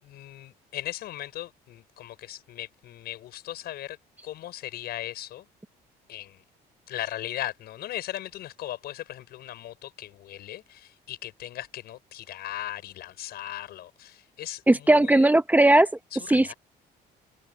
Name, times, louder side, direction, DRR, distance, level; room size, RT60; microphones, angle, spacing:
voice 1, 0.0-4.0 4.2-5.5 6.1-6.4 6.9-15.3 16.1-16.5, left 13 dB, 70° left, 5.4 m, -38 dB
voice 2, 14.7-15.9 16.3-16.5, right 1 dB, 10° right, 1.0 m, -18 dB
cardioid pair, 110°, 17 cm